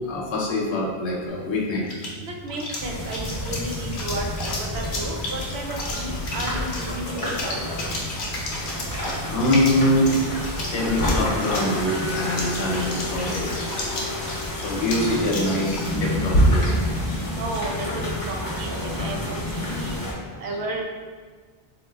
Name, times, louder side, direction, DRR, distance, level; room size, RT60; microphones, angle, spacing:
voice 1, 0.1-1.8 5.3-5.5 8.2-8.3 9.0-10.2 10.4-13.7 14.3-16.8 17.1-17.2 20.4-20.5, left 1 dB, 85° left, -3 dB, 1.0 m, -24 dB
sound 1, 1.3-16.8, equal, 55° left, 0.7 m, -31 dB
voice 2, 2.2-4.2 4.7-7.6 17.4-17.7 18.3-20.0 20.4-20.8, right 2 dB, 75° right, 0 dB, 0.8 m, -33 dB
sound 2, 2.8-20.1, left 1 dB, 25° left, 0.6 m, -30 dB
3.8 x 2.7 x 2.3 m, 1.5 s
omnidirectional pair, 1.1 m